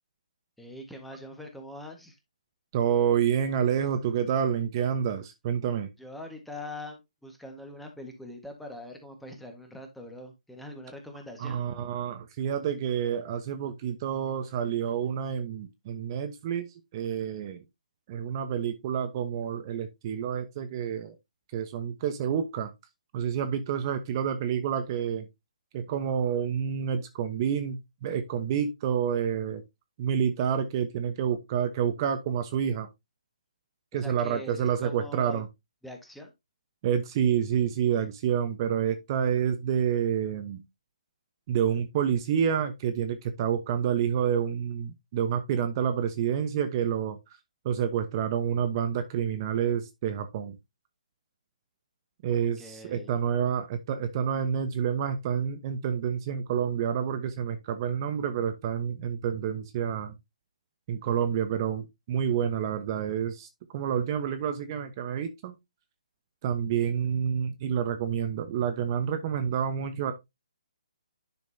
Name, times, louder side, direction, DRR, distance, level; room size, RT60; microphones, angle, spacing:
voice 1, 0.6-2.2 6.0-11.6 33.9-35.4 35.8-36.3 52.3-53.1, left 1 dB, ahead, 1.6 m, -43 dB
voice 2, 2.7-5.9 11.4-16.7 16.9-17.6 18.1-21.1 21.5-22.7 23.1-25.3 25.7-29.6 30.0-32.9 33.9-35.5 36.8-40.6 41.5-47.2 47.6-50.6 52.2-60.1 60.9-65.5 66.4-70.1, right 8 dB, 30° right, 1.1 m, -28 dB
10.5 x 6.0 x 2.8 m
hypercardioid pair, 150°, 4 cm